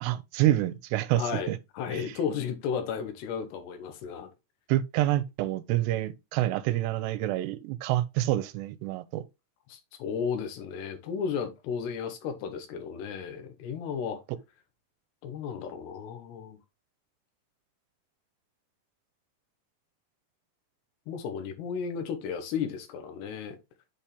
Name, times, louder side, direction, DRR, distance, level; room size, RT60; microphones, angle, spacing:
voice 1, 0.0-1.6 1.9-2.2 4.7-9.2, right 14 dB, 85° right, 2.7 m, -27 dB
voice 2, 1.1-4.3 9.7-14.2 15.2-16.6 21.1-23.6, left 7 dB, 80° left, 3.1 m, -34 dB
7.4 x 4.4 x 3.3 m
omnidirectional pair, 4.9 m